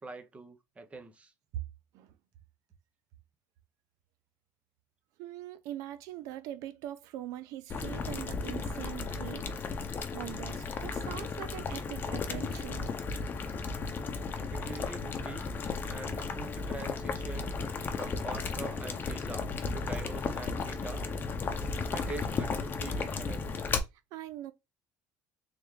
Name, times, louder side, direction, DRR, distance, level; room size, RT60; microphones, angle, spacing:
voice 1, 0.0-1.3 14.5-15.5 15.9-17.5 17.9-19.5 19.7-21.1 21.9-23.5, right 3 dB, 20° right, 0.8 m, -44 dB
voice 2, 5.2-9.5 10.1-12.9 24.1-24.5, right 13 dB, 80° right, 0.6 m, -42 dB
Boiling, 7.7-23.8, left 4 dB, 35° left, 0.7 m, -34 dB
3.6 x 3.4 x 3.1 m
cardioid pair, 120°, 6 cm